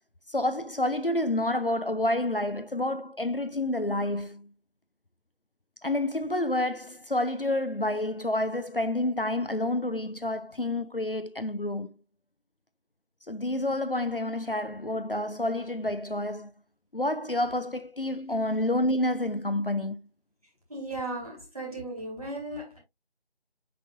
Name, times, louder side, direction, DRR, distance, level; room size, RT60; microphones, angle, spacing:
voice 1, 0.3-4.5 5.8-11.9 13.3-16.5 16.9-20.0, left 1 dB, 55° left, 0.6 m, -29 dB
voice 2, 20.7-22.8, right 2 dB, 35° right, 4.2 m, -36 dB
8.2 x 6.0 x 2.5 m
figure-of-eight pair, 175°, 33 cm